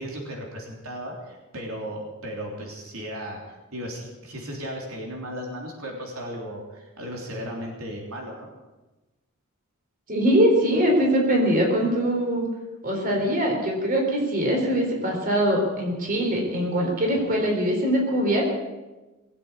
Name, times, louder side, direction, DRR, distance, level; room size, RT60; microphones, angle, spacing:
voice 1, 0.0-8.5, equal, 85° right, 0 dB, 3.4 m, -35 dB
voice 2, 10.1-12.4 12.8-18.4, equal, 40° right, 1 dB, 4.0 m, -22 dB
20.5 x 8.6 x 8.3 m, 1.1 s
head